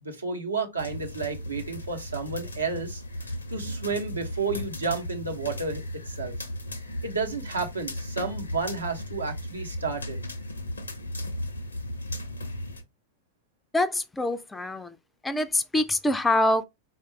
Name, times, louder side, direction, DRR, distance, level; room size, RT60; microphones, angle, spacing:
voice 1, 0.0-6.3 7.0-10.2, right 4 dB, 80° right, 0.8 m, -32 dB
sound 1, 0.8-12.8, left 1 dB, 80° left, 0.5 m, -36 dB
voice 2, 13.7-15.0 15.2-16.6, left 1 dB, 10° left, 0.3 m, -25 dB
4.4 x 2.3 x 3.2 m
figure-of-eight pair, 90°, 0 cm